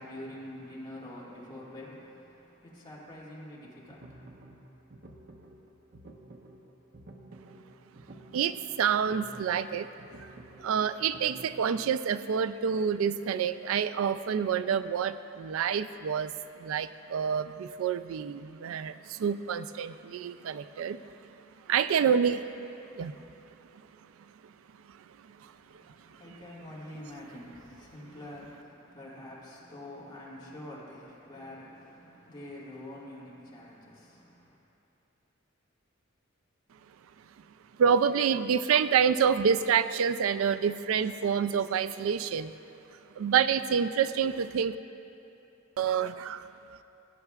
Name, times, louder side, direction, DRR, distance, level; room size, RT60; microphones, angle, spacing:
voice 1, 0.0-4.6 25.5-34.6, left 1 dB, 20° left, -6 dB, 1.9 m, -46 dB
sound 1, 3.6-11.7, right 1 dB, 50° right, 0.7 m, -51 dB
voice 2, 8.3-9.9 10.2-10.3 10.6-16.3 16.6-21.0 21.7-22.5 22.9-23.2 25.3-25.5 37.8-42.5 43.2-44.8 45.8-46.4, right 7 dB, 85° right, 13 dB, 0.3 m, -27 dB
17.5 x 8.8 x 2.4 m, 3.0 s
head